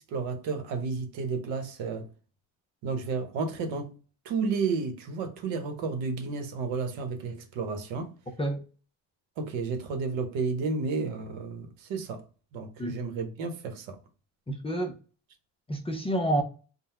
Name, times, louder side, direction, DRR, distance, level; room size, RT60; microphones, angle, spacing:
voice 1, 0.1-2.1 2.8-3.9 4.2-8.1 9.4-12.2 12.5-14.0, right 4 dB, 85° right, 0.9 m, -32 dB
voice 2, 14.5-14.9 15.7-16.4, right 1 dB, 15° left, 0.3 m, -28 dB
3.8 x 2.1 x 4.3 m
cardioid pair, 145°, 45 cm